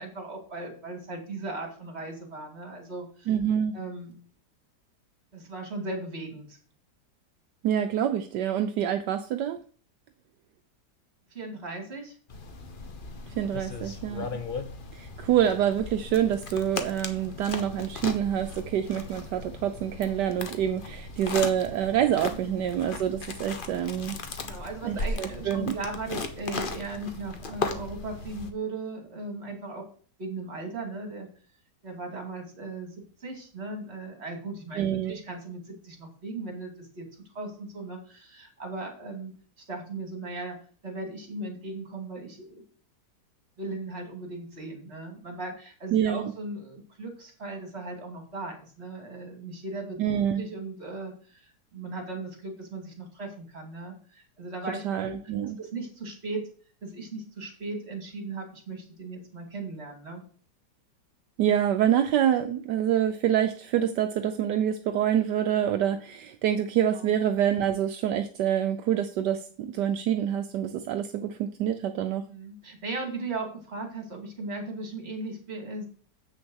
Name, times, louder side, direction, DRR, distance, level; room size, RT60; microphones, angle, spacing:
voice 1, 0.0-3.3 3.7-4.1 5.3-6.6 11.3-12.2 14.2-14.4 22.3-22.6 24.4-29.9 30.2-31.3 31.8-32.9 33.2-39.3 39.6-40.6 40.8-42.6 43.6-50.0 50.3-55.2 55.6-56.4 56.8-60.2 66.9-67.1 72.3-75.9, right 2 dB, 35° right, 3 dB, 2.7 m, -37 dB
voice 2, 3.3-3.8 7.6-9.6 13.4-14.3 14.9-24.2 24.8-25.8 34.8-35.1 45.9-46.3 50.0-50.4 54.8-55.6 61.4-72.2, right 10 dB, 80° right, 7 dB, 1.3 m, -26 dB
sound 1, 12.3-28.5, left 3 dB, 35° left, 1.0 m, -37 dB
7.9 x 6.6 x 6.3 m, 0.42 s
omnidirectional pair, 1.8 m